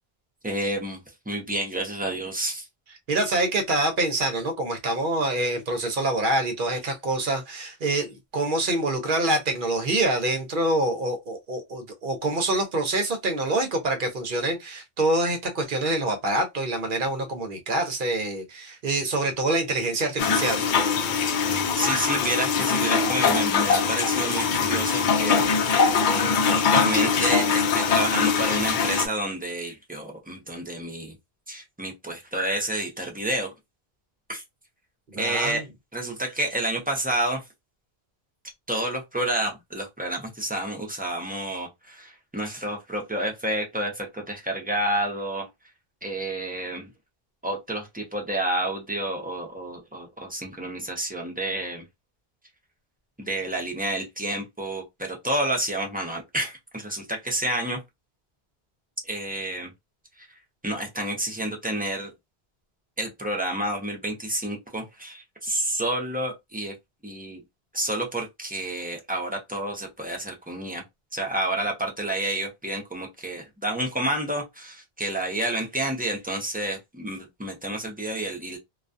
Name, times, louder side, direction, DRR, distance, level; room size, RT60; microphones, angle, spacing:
voice 1, 0.4-1.0 1.3-2.6 21.8-25.7 26.0-31.1 31.5-33.5 34.3-34.4 35.1-35.6 35.9-37.4 38.7-45.5 46.0-46.9 47.4-51.8 53.2-57.8 59.0-59.7 60.2-60.3 60.6-62.1 63.0-66.7 67.0-67.4 67.7-70.8 71.1-78.6, right 1 dB, 10° right, 0.5 m, -29 dB
voice 2, 3.1-20.6 35.1-35.6, right 2 dB, 60° right, 0.8 m, -26 dB
sound 1, 20.2-29.1, left 5 dB, 60° left, 0.6 m, -22 dB
2.3 x 2.2 x 2.5 m
omnidirectional pair, 1.0 m